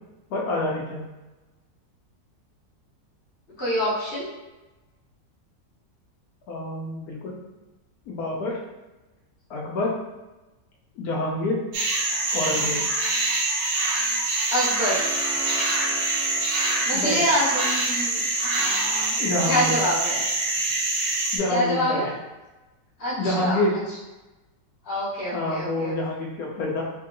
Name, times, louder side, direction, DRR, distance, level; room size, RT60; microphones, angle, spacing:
voice 1, 0.3-1.0 6.5-7.3 8.1-8.6 9.5-9.9 11.0-11.6 12.3-12.8 16.9-17.2 19.2-19.8 21.0-22.1 23.2-23.8 25.3-26.8, left 2 dB, 70° left, -3 dB, 1.0 m, -27 dB
voice 2, 3.6-4.3 12.5-12.8 14.5-15.0 16.9-19.1 19.4-20.2 21.5-22.0 23.0-23.6 24.8-25.9, equal, 40° left, -10 dB, 0.8 m, -26 dB
sound 1, 11.7-21.4, right 2 dB, 80° right, 1.4 m, -25 dB
sound 2, 14.9-19.6, right 1 dB, 60° right, 0.9 m, -40 dB
3.4 x 2.7 x 2.5 m, 1.1 s
omnidirectional pair, 1.9 m